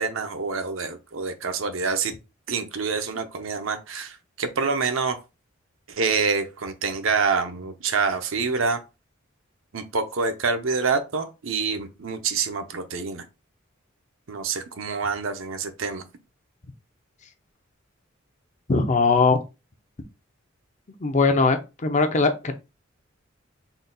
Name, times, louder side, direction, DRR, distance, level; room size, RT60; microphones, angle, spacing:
voice 1, 0.0-2.1 2.5-5.2 5.9-8.8 9.7-13.2 14.3-16.0, right 4 dB, 75° right, 0.7 m, -26 dB
voice 2, 18.7-19.4 21.0-22.5, left 4 dB, 35° left, 0.6 m, -20 dB
3.9 x 3.9 x 2.3 m
head